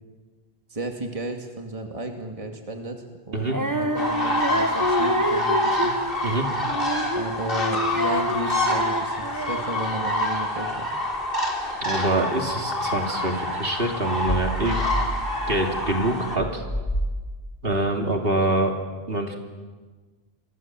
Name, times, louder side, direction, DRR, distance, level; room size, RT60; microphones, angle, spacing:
voice 1, 0.7-6.0 7.1-10.9, right 2 dB, 35° right, 3 dB, 2.4 m, -33 dB
Female singing, 3.5-9.9, equal, 20° right, 1.4 m, -28 dB
sound 1, 4.0-16.4, left 1 dB, 60° left, 3.7 m, -27 dB
voice 2, 11.8-14.8 15.5-16.6 17.6-18.7 19.1-19.4, right 1 dB, 65° right, 2 dB, 3.0 m, -25 dB
sound 2, 14.2-17.7, equal, 30° left, 3.7 m, -30 dB
29.0 x 23.5 x 7.6 m, 1.4 s
omnidirectional pair, 1.1 m